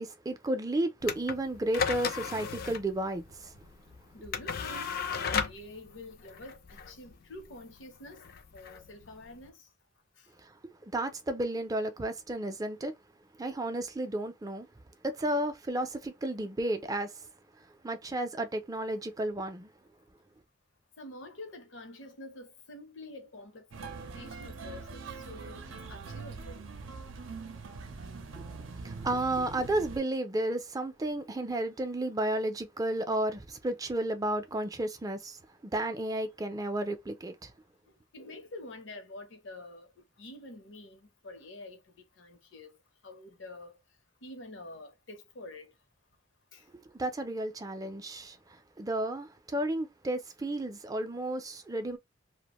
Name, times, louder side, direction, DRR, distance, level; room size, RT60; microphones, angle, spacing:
voice 1, 0.0-3.5 10.4-12.9 13.4-14.7 15.0-17.3 17.8-19.7 28.4-28.5 28.8-35.4 35.7-37.5 46.9-52.0, right 1 dB, 20° right, 0.4 m, -32 dB
sound 1, 1.0-9.5, left 6 dB, 50° left, 0.4 m, -36 dB
voice 2, 4.1-8.2 8.5-9.7 10.2-10.3 21.0-26.7 38.1-39.9 40.2-42.8 43.0-43.8 44.2-45.7 46.5-46.6, left 2 dB, 75° left, 0.7 m, -47 dB
sound 2, 23.7-30.0, right 4 dB, 85° right, 0.6 m, -43 dB
2.4 x 2.1 x 2.9 m
head